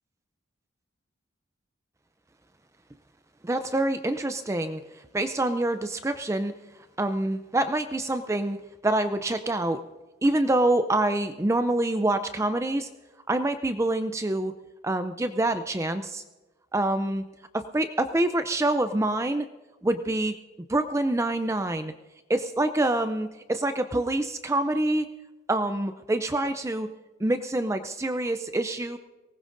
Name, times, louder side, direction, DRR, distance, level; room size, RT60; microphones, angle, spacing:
voice 1, 3.4-4.8 5.1-6.5 7.0-8.6 8.8-9.8 10.2-12.9 13.3-14.5 14.8-16.2 16.7-17.2 17.5-19.5 19.8-20.3 20.7-21.9 22.3-25.0 25.5-26.9 27.2-29.0, right 1 dB, 15° right, 9 dB, 0.4 m, -26 dB
23.0 x 19.0 x 2.6 m, 1.1 s
head